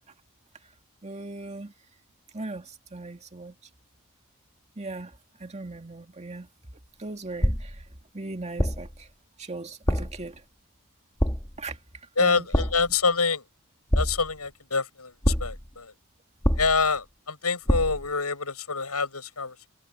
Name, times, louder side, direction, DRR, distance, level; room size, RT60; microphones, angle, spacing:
voice 1, 1.0-1.7 2.3-3.5 4.8-6.5 7.0-7.8 8.1-9.1 9.4-10.4 11.6-11.8 12.2-12.5, right 2 dB, 30° right, 2.1 m, -38 dB
sound 1, 7.4-7.9 8.6-9.0 9.9-10.3 11.2-11.6 12.5-13.0 13.9-14.5 15.2-15.7 16.4-17.0 17.7-18.1, equal, 15° left, 2.3 m, -26 dB
voice 2, 12.2-13.4 13.9-15.9 16.6-19.7, left 4 dB, 80° left, 7.5 m, -26 dB
head